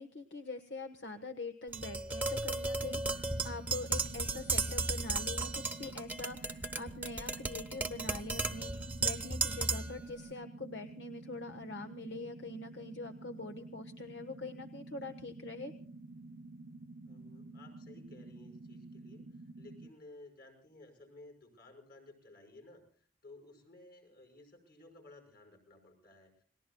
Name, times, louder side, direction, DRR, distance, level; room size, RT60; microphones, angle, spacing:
voice 1, 0.0-15.7, left 3 dB, 75° left, 8 dB, 1.3 m, -44 dB
Tap, 1.7-10.0, right 3 dB, 10° right, 1.0 m, -35 dB
sound 1, 2.8-19.9, right 2 dB, 85° right, 0.9 m, -50 dB
voice 2, 17.1-19.3 19.6-26.4, left 2 dB, 55° left, 4 dB, 5.9 m, -56 dB
30.0 x 19.0 x 2.3 m, 0.42 s
head